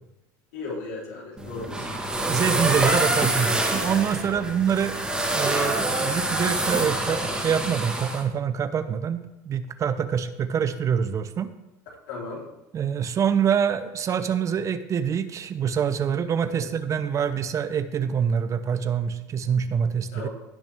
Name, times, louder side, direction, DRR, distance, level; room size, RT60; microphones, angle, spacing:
voice 1, 0.5-2.0 4.4-4.5 12.1-12.4 16.5-16.7 20.1-20.3, left 3 dB, 75° left, -3 dB, 3.5 m, -36 dB
sound 1, 1.4-8.2, right 1 dB, 10° right, 2.5 m, -26 dB
voice 2, 2.3-5.0 5.3-9.2 9.4-11.5 12.7-20.3, right 7 dB, 35° right, 12 dB, 0.7 m, -25 dB
16.0 x 6.2 x 3.5 m, 0.94 s
supercardioid pair, 95°, 9 cm